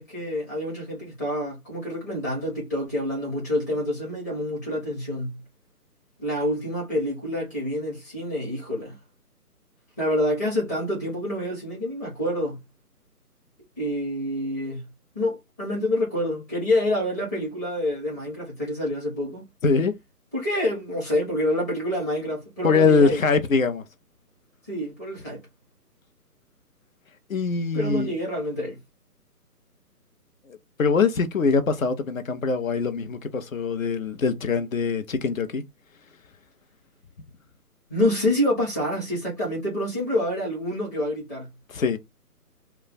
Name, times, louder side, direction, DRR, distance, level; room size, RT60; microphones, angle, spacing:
voice 1, 0.0-5.4 6.2-9.0 10.0-12.6 13.8-14.8 15.1-19.5 20.3-23.2 24.7-25.4 27.7-28.8 37.9-41.5, left 1 dB, 10° left, 0.8 m, -27 dB
voice 2, 19.6-19.9 22.6-23.8 27.3-28.1 30.8-35.6 41.7-42.0, left 4 dB, 55° left, 0.8 m, -23 dB
2.4 x 2.2 x 4.0 m
figure-of-eight pair, 155°, 47 cm